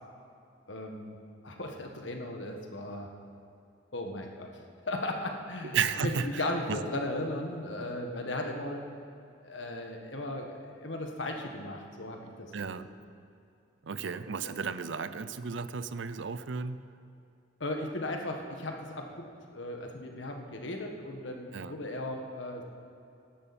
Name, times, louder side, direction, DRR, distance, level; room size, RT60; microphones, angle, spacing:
voice 1, 0.7-1.2 1.4-3.1 3.9-8.8 9.4-12.3 12.5-12.9 14.0-14.1 14.4-14.6 17.6-22.6, left 1 dB, 80° left, 2 dB, 1.6 m, -37 dB
voice 2, 5.7-6.8 12.5-12.9 13.8-16.8 21.5-21.7, right 6 dB, 80° right, 13 dB, 0.6 m, -33 dB
18.0 x 11.5 x 4.3 m, 2.6 s
head